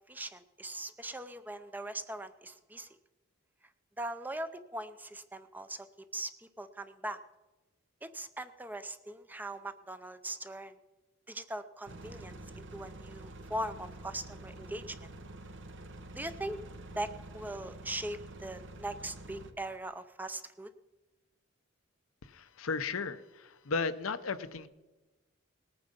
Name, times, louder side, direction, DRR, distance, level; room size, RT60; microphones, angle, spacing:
voice 1, 0.1-2.9 4.0-5.9 6.1-7.2 8.0-10.8 11.3-15.1 16.2-16.6 17.0-20.7, right 1 dB, 10° right, 11 dB, 0.5 m, -40 dB
sound 1, 11.9-19.5, right 1 dB, 60° right, 1.1 m, -48 dB
voice 2, 22.2-24.7, left 4 dB, 85° left, 12 dB, 0.7 m, -35 dB
19.5 x 9.1 x 5.3 m, 1.1 s
head